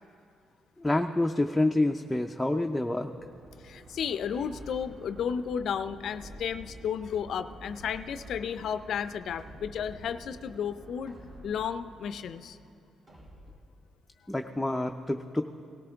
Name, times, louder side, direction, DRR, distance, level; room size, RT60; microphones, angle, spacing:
voice 1, 0.8-3.1 14.3-15.4, left 2 dB, 10° left, 3 dB, 0.4 m, -27 dB
sound 1, 2.9-12.8, right 1 dB, 60° right, 1.7 m, -50 dB
voice 2, 3.6-11.2 11.4-12.6, left 7 dB, 65° left, 12 dB, 0.4 m, -33 dB
sound 2, 4.3-5.0 6.0-6.7 7.6-8.3 9.4-10.0 11.1-11.8 13.1-13.7, equal, 40° right, 3.2 m, -51 dB
18.0 x 14.0 x 3.4 m, 2.4 s
cardioid pair, 90°, 0 cm